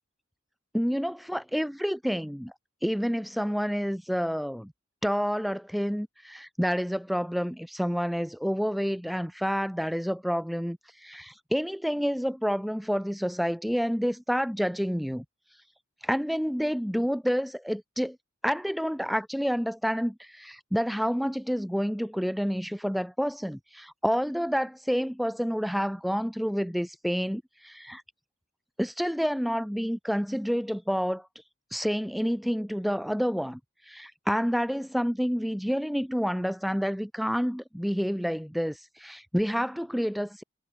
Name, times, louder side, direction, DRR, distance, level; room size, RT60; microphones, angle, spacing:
voice 1, 0.7-2.5 2.8-4.7 5.0-15.2 16.0-18.2 18.4-28.0 28.8-31.3 31.7-33.6 33.9-40.4, equal, ahead, 0.3 m, -29 dB
head